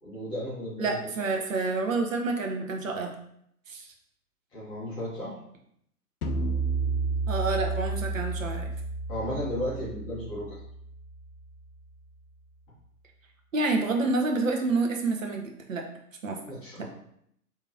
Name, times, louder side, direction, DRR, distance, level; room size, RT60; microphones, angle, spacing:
voice 1, 0.0-1.0 4.5-5.3 9.1-10.6 16.5-16.8, equal, 10° left, -9 dB, 0.6 m, -34 dB
voice 2, 0.8-3.1 3.7-3.8 7.3-8.7 13.5-15.8 16.2-16.4 16.8-16.9, right 3 dB, 55° right, 2 dB, 0.8 m, -28 dB
sound 1, 6.2-11.6, right 3 dB, 65° left, 0.6 m, -31 dB
4.5 x 2.8 x 2.5 m, 0.71 s
figure-of-eight pair, 120°, 47 cm